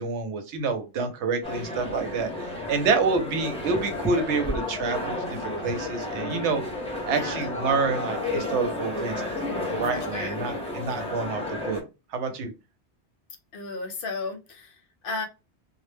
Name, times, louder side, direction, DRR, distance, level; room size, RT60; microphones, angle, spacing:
voice 1, 0.0-6.8 7.0-9.2 9.7-11.8 12.1-12.5, right 4 dB, 90° right, 7 dB, 0.9 m, -28 dB
sound 1, 1.4-11.8, left 2 dB, 5° left, 0.5 m, -32 dB
voice 2, 2.7-3.0 7.1-7.6 9.9-10.4 13.5-15.3, left 3 dB, 60° left, 5 dB, 0.7 m, -35 dB
2.1 x 2.0 x 3.2 m, 0.28 s
omnidirectional pair, 1.1 m